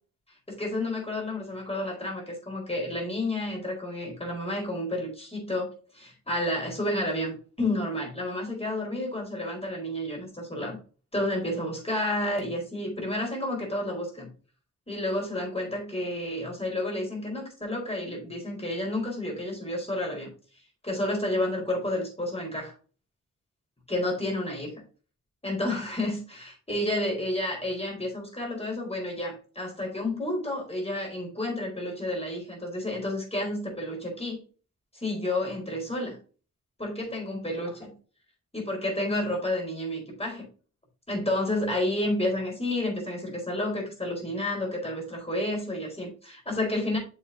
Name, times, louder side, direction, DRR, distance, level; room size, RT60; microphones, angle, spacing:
voice 1, 0.5-10.8 11.1-14.3 14.9-20.3 20.8-22.7 23.9-24.8 25.4-34.4 34.9-36.2 36.8-37.9 38.5-40.4 41.1-47.0, left 1 dB, 20° left, 0 dB, 4.6 m, -30 dB
7.8 x 7.3 x 2.8 m, 0.36 s
wide cardioid pair, 110°, 31 cm